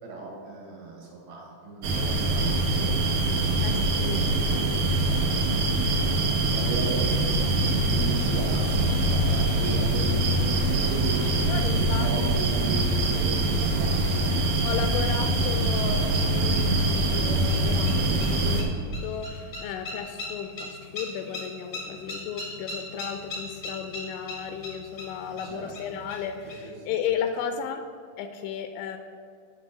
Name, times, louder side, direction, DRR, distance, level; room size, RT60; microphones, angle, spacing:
voice 1, 0.0-6.1 6.5-7.1 7.6-14.5 25.4-26.0 26.4-26.7, right 3 dB, 65° right, -2 dB, 3.1 m, -37 dB
sound 1, 1.8-18.6, right 2 dB, 85° right, 1.8 m, -24 dB
voice 2, 3.6-4.2 11.4-12.1 14.6-18.7 19.0-27.9 28.2-29.0, left 8 dB, 85° left, 7 dB, 2.8 m, -34 dB
sound 2, 7.0-26.5, left 2 dB, 60° left, 0.8 m, -43 dB
9.9 x 4.2 x 7.2 m, 2.2 s
omnidirectional pair, 5.3 m